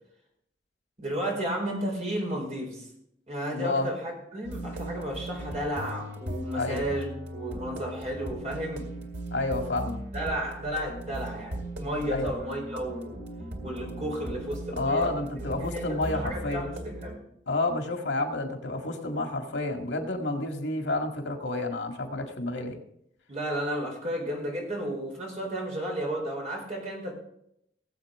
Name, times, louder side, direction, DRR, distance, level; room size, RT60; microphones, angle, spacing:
voice 1, 1.0-2.9 3.3-8.9 10.1-13.1 13.6-15.2 15.5-17.2 23.3-27.1, equal, 40° right, -1 dB, 4.1 m, -33 dB
voice 2, 3.5-3.9 6.6-6.8 9.3-10.0 12.1-12.3 14.7-16.7 17.5-22.8, left 2 dB, 80° left, 4 dB, 1.9 m, -30 dB
sound 1, 4.4-17.2, right 1 dB, 70° right, 2.0 m, -38 dB
18.5 x 7.9 x 3.7 m, 0.75 s
head